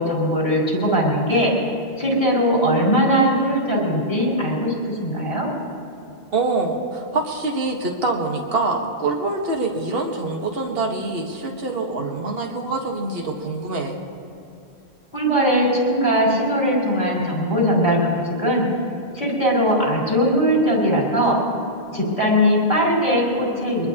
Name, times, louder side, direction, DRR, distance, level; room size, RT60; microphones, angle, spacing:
voice 1, 0.0-1.5 2.0-5.5 15.1-18.7 19.1-21.4 21.9-23.9, equal, 40° left, -4 dB, 5.3 m, -20 dB
voice 2, 6.3-14.0, right 3 dB, 65° right, 1 dB, 1.7 m, -25 dB
23.0 x 21.0 x 2.9 m, 2.7 s
omnidirectional pair, 1.1 m